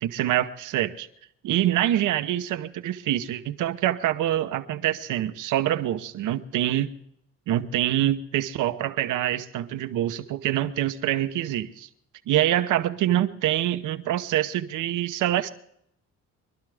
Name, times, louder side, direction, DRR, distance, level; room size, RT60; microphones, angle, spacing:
voice 1, 0.0-1.1 1.4-6.9 7.5-11.9 12.3-15.5, right 12 dB, 85° right, 11 dB, 1.0 m, -25 dB
25.0 x 12.0 x 3.5 m, 0.72 s
cardioid pair, 90°, 30 cm